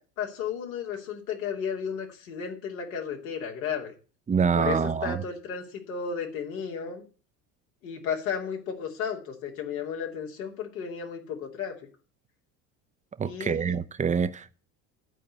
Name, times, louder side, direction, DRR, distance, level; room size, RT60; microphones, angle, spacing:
voice 1, 0.0-3.9 4.6-7.0 7.8-11.7 13.2-13.7, left 7 dB, 85° left, 2.7 m, -34 dB
voice 2, 4.3-5.2 13.2-14.6, right 6 dB, 20° right, 0.7 m, -26 dB
11.0 x 4.7 x 8.2 m
hypercardioid pair, 75°, 40 cm